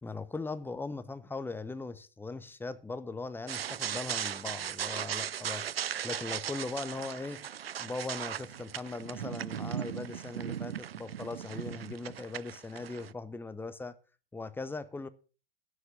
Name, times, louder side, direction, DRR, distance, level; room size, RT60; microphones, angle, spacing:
voice 1, 0.0-7.4 7.8-14.0 14.3-15.1, left 3 dB, 5° left, 0.8 m, -39 dB
sound 1, 3.5-13.1, right 9 dB, 80° right, 0.4 m, -37 dB
11.5 x 6.5 x 7.3 m
figure-of-eight pair, 90°, 29 cm